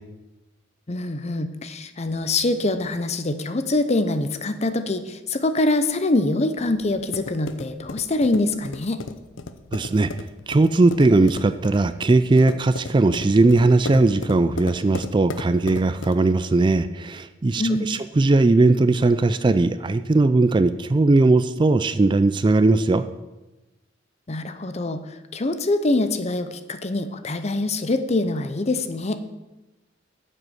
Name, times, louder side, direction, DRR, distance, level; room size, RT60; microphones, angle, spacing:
voice 1, 0.9-9.0 17.6-17.9 24.3-29.2, left 2 dB, 35° left, 10 dB, 0.7 m, -24 dB
sound 1, 6.6-16.4, left 3 dB, 75° left, 0.7 m, -36 dB
voice 2, 9.7-10.1 10.5-23.0, right 2 dB, 25° right, 12 dB, 0.3 m, -19 dB
9.5 x 7.7 x 6.4 m, 1.1 s
head